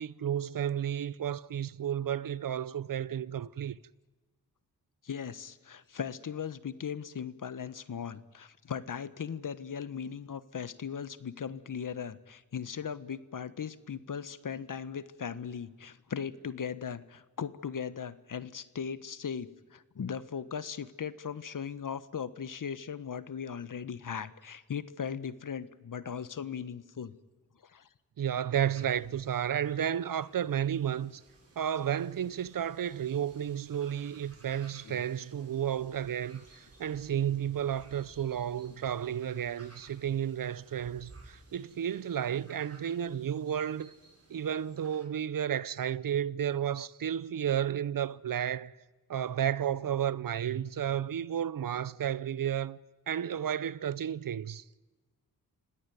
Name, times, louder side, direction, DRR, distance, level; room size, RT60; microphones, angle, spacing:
voice 1, 0.0-3.8 28.2-31.2 31.6-43.9 44.3-48.7 49.1-52.8 53.1-54.6, right 9 dB, 60° right, 0.7 m, -32 dB
voice 2, 5.0-27.1 27.6-27.9 34.8-35.0, left 7 dB, 55° left, 1.3 m, -38 dB
sound 1, 28.7-45.0, right 2 dB, 40° right, 7.2 m, -58 dB
26.5 x 17.5 x 9.3 m
cardioid pair, 70°, 38 cm